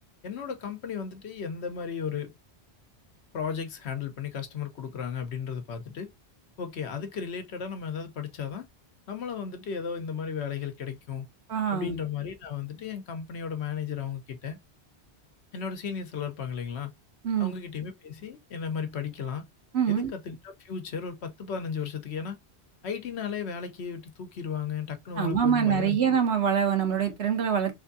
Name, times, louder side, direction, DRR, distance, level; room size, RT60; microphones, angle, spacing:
voice 1, 0.2-2.3 3.3-6.1 6.6-8.7 9.1-11.3 11.7-14.6 15.5-16.9 17.4-19.5 19.9-22.4 22.8-26.0, left 7 dB, 80° left, 1.1 m, -35 dB
voice 2, 11.5-12.0 17.2-17.5 19.7-20.1 25.2-27.7, right 7 dB, 75° right, 1.2 m, -25 dB
3.4 x 3.3 x 2.6 m
omnidirectional pair, 1.1 m